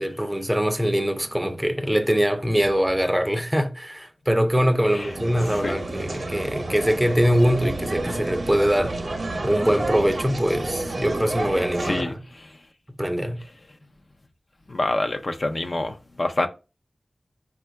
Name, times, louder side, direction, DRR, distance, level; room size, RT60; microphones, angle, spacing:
voice 1, 0.0-9.0 9.4-12.2 13.0-13.4, equal, 10° right, 0.5 m, -23 dB
sound 1, 4.9-12.0, right 2 dB, 70° right, 0.6 m, -30 dB
voice 2, 11.8-12.1 14.7-16.5, left 2 dB, 55° left, 0.4 m, -26 dB
4.4 x 2.3 x 3.2 m
wide cardioid pair, 70°, 0 cm